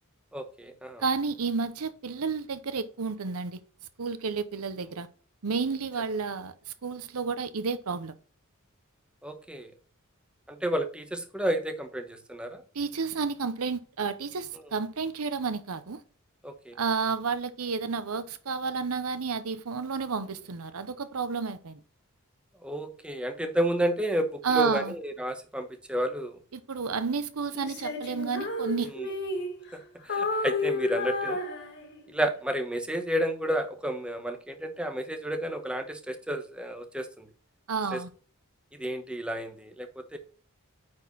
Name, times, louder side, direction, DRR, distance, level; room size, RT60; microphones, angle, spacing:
voice 1, 0.3-1.0 9.2-9.7 10.5-12.6 16.4-16.8 22.6-26.4 28.9-29.1 29.7-31.4 32.1-37.3 37.9-38.0 38.7-40.2, right 1 dB, 5° right, 1.0 m, -31 dB
voice 2, 1.0-3.6 4.0-5.1 5.4-8.1 12.7-16.0 16.8-21.8 24.4-24.9 26.5-28.9 37.7-38.1, right 5 dB, 85° right, 0.8 m, -31 dB
Female singing, 27.5-29.8 30.1-32.2, left 3 dB, 55° left, 2.0 m, -32 dB
9.6 x 4.3 x 4.1 m
head